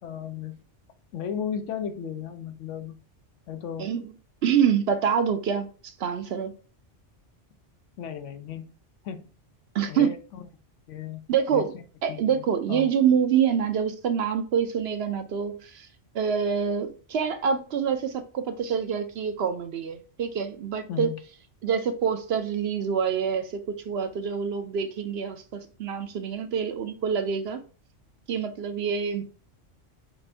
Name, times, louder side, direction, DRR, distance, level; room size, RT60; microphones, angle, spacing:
voice 1, 0.0-0.6 1.1-3.0 3.5-3.9 8.0-8.7 9.0-9.3 9.9-10.5 10.9-11.2 11.5-11.8 12.1-12.9 20.9-21.2, left 8 dB, 80° left, 1.0 m, -35 dB
voice 2, 4.4-5.7 6.0-6.5 9.7-10.1 11.3-11.7 12.0-15.9 16.1-21.1 21.6-27.6 28.3-29.2, right 7 dB, 65° right, 0.8 m, -26 dB
5.1 x 2.5 x 3.3 m
omnidirectional pair, 1.2 m